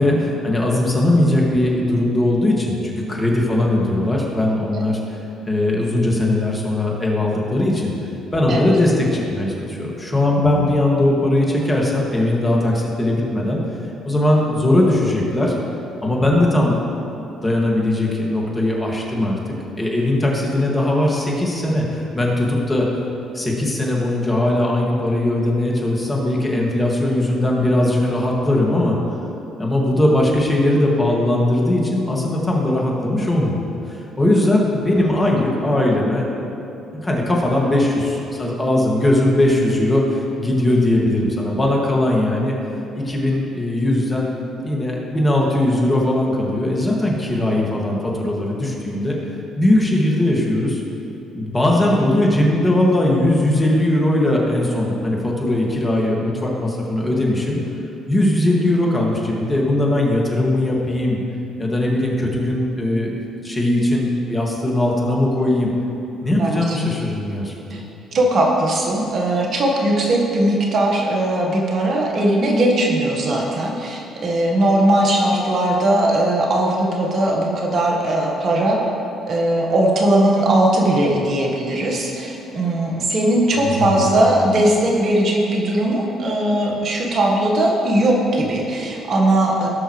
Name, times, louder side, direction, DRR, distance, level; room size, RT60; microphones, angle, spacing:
voice 1, 0.0-7.9 8.3-13.6 14.0-15.5 16.0-16.8 17.4-19.4 19.8-22.9 23.3-29.0 29.6-33.6 33.9-36.3 37.0-42.5 42.9-44.3 44.6-49.2 49.6-50.8 51.3-57.6 58.1-61.2 61.6-63.1 63.4-65.7 66.2-67.6 83.5-84.3, left 1 dB, 25° left, -2 dB, 2.5 m, -19 dB
voice 2, 10.4-10.7 66.4-66.8 67.7-67.8 68.1-78.8 79.3-89.7, right 1 dB, 55° right, -1 dB, 1.7 m, -19 dB
17.5 x 6.4 x 3.4 m, 2.8 s
hypercardioid pair, 55°, 0 cm